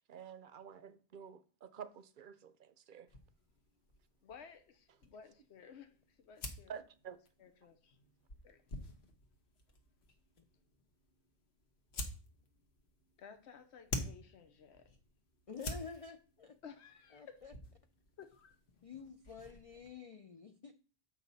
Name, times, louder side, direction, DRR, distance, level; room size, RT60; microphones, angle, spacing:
voice 1, 0.1-3.1 6.7-7.2, right 7 dB, 55° right, 0.7 m, -50 dB
sound 1, 3.1-19.9, left 2 dB, 70° left, 1.3 m, -49 dB
voice 2, 4.2-6.7 7.4-8.0 8.4-8.6 13.2-14.9 16.6-17.4 18.2-18.6, left 6 dB, 90° left, 1.1 m, -56 dB
voice 3, 15.5-16.6 17.1-17.5 18.8-20.7, left 5 dB, 45° left, 0.5 m, -49 dB
7.7 x 5.8 x 4.0 m
omnidirectional pair, 1.1 m